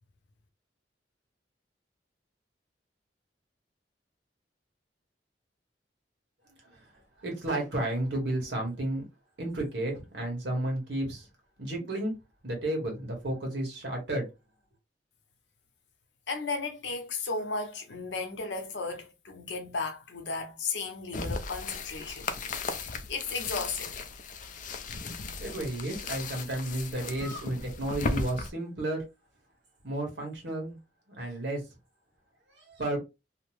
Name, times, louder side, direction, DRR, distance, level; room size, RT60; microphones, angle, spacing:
voice 1, 7.2-9.0 9.4-11.3 11.6-12.1 12.4-14.3 25.4-29.0 29.8-30.8 31.1-31.6 32.5-33.0, right 1 dB, 75° right, 1.2 m, -32 dB
voice 2, 16.3-22.4 22.7-24.0, left 4 dB, 80° left, 0.7 m, -35 dB
sound 1, 21.1-28.5, left 3 dB, 45° left, 0.4 m, -36 dB
2.7 x 2.0 x 3.0 m
head